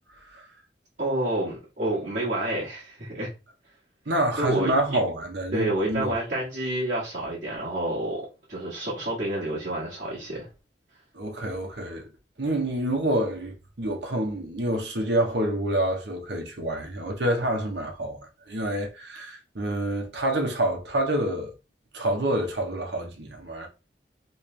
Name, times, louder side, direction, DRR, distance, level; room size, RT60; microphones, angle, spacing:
voice 1, 1.0-3.3 4.4-4.7 5.5-8.2 8.5-10.5, right 1 dB, 45° right, 1.4 m, -28 dB
voice 2, 4.1-6.2 11.1-12.0 12.4-18.2 18.5-21.5 21.9-23.7, right 1 dB, 75° right, 0.9 m, -27 dB
3.1 x 3.1 x 3.2 m
head